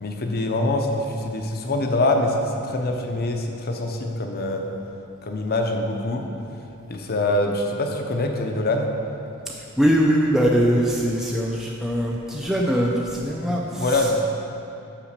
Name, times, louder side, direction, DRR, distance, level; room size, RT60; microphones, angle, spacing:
voice 1, 0.0-4.6 5.2-6.2 6.9-8.9 13.4-14.2, left 2 dB, 45° left, 3 dB, 0.7 m, -24 dB
voice 2, 9.8-14.1, equal, ahead, -2 dB, 0.4 m, -22 dB
5.8 x 5.0 x 6.6 m, 2.8 s
head